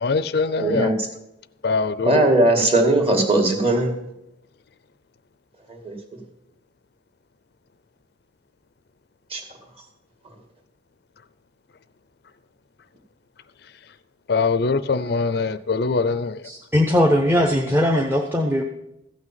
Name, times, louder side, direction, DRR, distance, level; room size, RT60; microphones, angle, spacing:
voice 1, 0.0-0.9 1.6-2.2 14.3-16.3, left 4 dB, 60° left, 0.5 m, -22 dB
voice 2, 0.6-0.9 2.0-3.9 5.7-5.9 9.3-9.4, right 2 dB, 30° right, 2.2 m, -19 dB
voice 3, 16.4-18.6, left 1 dB, 10° right, 0.9 m, -19 dB
15.0 x 6.2 x 7.5 m
head